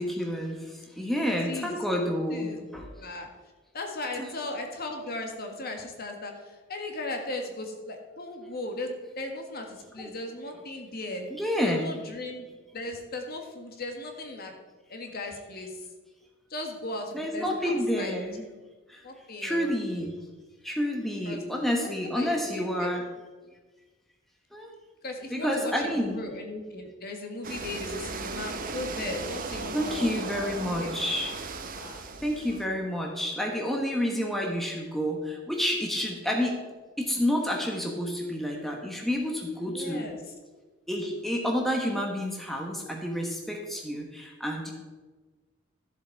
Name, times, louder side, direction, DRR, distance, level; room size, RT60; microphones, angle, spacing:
voice 1, 0.0-2.9 4.2-4.3 10.0-10.1 11.3-11.8 17.1-18.4 18.9-19.0 19.4-20.1 20.6-23.1 24.5-24.7 25.3-26.2 29.7-31.3 32.2-36.6 37.0-40.1 40.9-44.7, equal, ahead, 0 dB, 1.2 m, -29 dB
voice 2, 3.0-3.3 3.7-11.3 11.6-12.4 12.7-14.5 14.9-15.8 16.5-18.2 19.0-19.7 21.2-21.4 21.8-23.0 25.0-30.9 31.7-32.0 39.6-40.3, left 2 dB, 45° left, 3 dB, 1.6 m, -37 dB
sound 1, 27.4-32.7, right 4 dB, 40° right, 0.8 m, -36 dB
13.5 x 7.3 x 4.6 m, 1.3 s
head